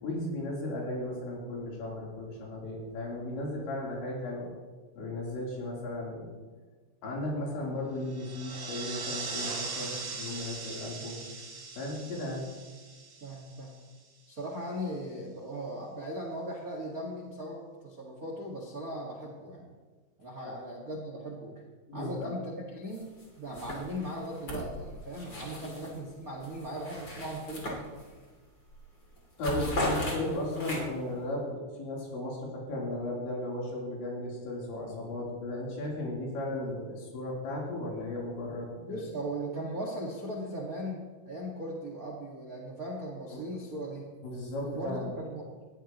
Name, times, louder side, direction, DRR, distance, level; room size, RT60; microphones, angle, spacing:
voice 1, 0.0-4.5 5.0-6.4 7.0-11.2 11.8-12.5 21.9-22.3 25.6-25.8 29.4-39.0 43.3-43.4 44.2-45.1, left 1 dB, 75° left, -4 dB, 6.0 m, -35 dB
sound 1, 8.1-13.9, right 4 dB, 55° right, 1.8 m, -40 dB
voice 2, 13.2-13.7 14.3-19.7 20.2-21.5 21.9-27.9 38.8-44.1 44.6-45.4, right 1 dB, 80° right, -1 dB, 0.8 m, -38 dB
sound 2, 22.9-23.2 23.5-26.0 26.4-28.3 28.7-28.9 29.2-31.1, left 1 dB, 25° left, 2.8 m, -36 dB
19.5 x 15.0 x 3.1 m, 1.4 s
omnidirectional pair, 5.2 m